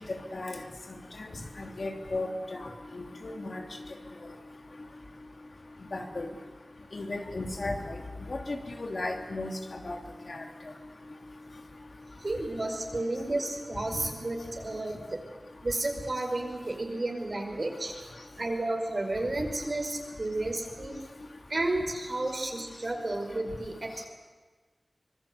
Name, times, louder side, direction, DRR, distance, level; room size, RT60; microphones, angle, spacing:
voice 1, 1.6-2.3 2.9-3.6 5.9-6.3 6.9-7.9 8.3-9.9 10.3-10.4, left 2 dB, 75° left, 2 dB, 3.0 m, -35 dB
voice 2, 12.2-15.2 15.6-17.9 18.4-21.0 21.5-24.1, right 2 dB, 60° right, 3 dB, 5.3 m, -32 dB
25.0 x 22.5 x 8.2 m, 1.3 s
wide cardioid pair, 60°, 0 cm